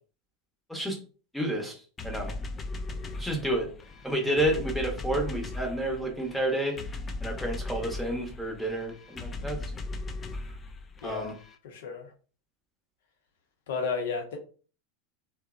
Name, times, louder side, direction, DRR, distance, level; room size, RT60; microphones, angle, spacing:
voice 1, 1.3-2.3 3.2-3.7 4.0-9.6 11.0-11.3, right 1 dB, 5° left, 1 dB, 0.9 m, -30 dB
sound 1, 2.0-11.5, left 2 dB, 25° left, 0.3 m, -38 dB
voice 2, 2.9-3.2 9.4-9.5 11.0-11.3 11.6-12.1 13.7-14.4, left 5 dB, 65° left, 3 dB, 0.6 m, -34 dB
2.7 x 2.0 x 2.4 m, 0.38 s
figure-of-eight pair, 85°, 0 cm